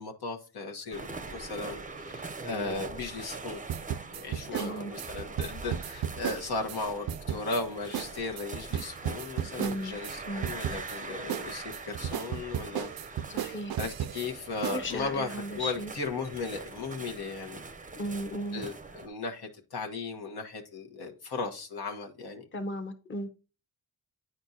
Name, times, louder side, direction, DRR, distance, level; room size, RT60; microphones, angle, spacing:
voice 1, 0.0-3.7 4.1-12.9 13.3-15.3 15.6-17.6 18.5-22.5, left 3 dB, 75° left, 1.3 m, -36 dB
sound 1, 0.9-19.1, right 3 dB, 20° right, 0.6 m, -43 dB
sound 2, 3.7-6.8 7.1-7.6 7.9-8.1 8.4-10.1 10.4-11.0 11.3-14.3 14.6-14.8, right 10 dB, 65° right, 0.5 m, -34 dB
voice 2, 4.5-4.9 9.6-10.0 10.3-10.4 13.3-13.8 14.7-15.9 18.0-18.6 22.5-23.3, equal, 30° left, 1.0 m, -35 dB
9.3 x 4.4 x 2.7 m
cardioid pair, 65°, 39 cm